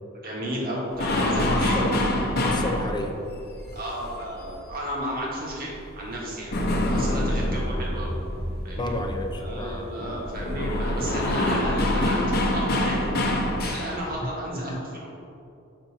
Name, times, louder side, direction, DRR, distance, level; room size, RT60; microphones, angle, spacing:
voice 1, 0.1-1.8 3.7-8.1 8.6-8.9 9.4-13.1 13.6-15.1, equal, 45° right, -3 dB, 1.7 m, -33 dB
sound 1, 0.9-5.2 5.5-14.1, left 1 dB, 50° left, 0.9 m, -26 dB
voice 2, 1.2-2.0 2.3-3.2 8.8-9.9 14.5-14.8, left 1 dB, 20° left, 4 dB, 0.6 m, -31 dB
7.5 x 5.7 x 4.1 m, 2.6 s
head